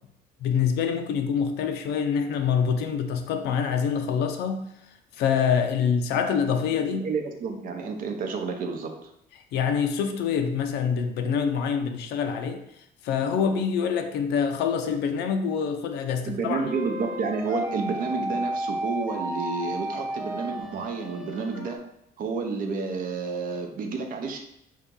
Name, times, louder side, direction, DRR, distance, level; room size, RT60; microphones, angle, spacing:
voice 1, 0.4-4.7 5.2-7.1 9.5-12.6 13.0-16.7, left 7 dB, 80° left, 0.5 m, -25 dB
voice 2, 6.9-8.9 16.2-21.8 22.2-24.4, right 4 dB, 55° right, 0.7 m, -30 dB
sound 1, 16.6-21.8, right 1 dB, 5° right, 0.9 m, -32 dB
2.9 x 2.8 x 3.6 m
cardioid pair, 110°, 17 cm